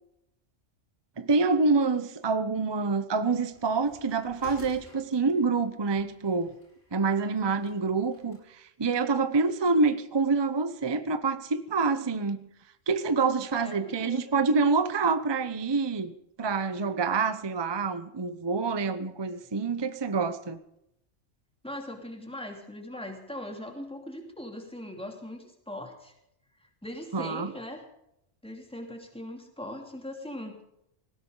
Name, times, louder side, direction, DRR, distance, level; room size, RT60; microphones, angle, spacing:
voice 1, 1.2-6.5 6.9-12.5 12.9-16.1 16.4-20.6 27.1-27.5, right 4 dB, 25° right, 11 dB, 0.8 m, -27 dB
sound 1, 3.5-8.4, left 2 dB, 90° left, 7.7 m, -54 dB
voice 2, 13.5-14.2 21.6-26.1 26.6-27.8 28.4-30.6, left 1 dB, 5° left, 2 dB, 2.9 m, -40 dB
19.0 x 17.0 x 4.0 m, 0.79 s
omnidirectional pair, 1.3 m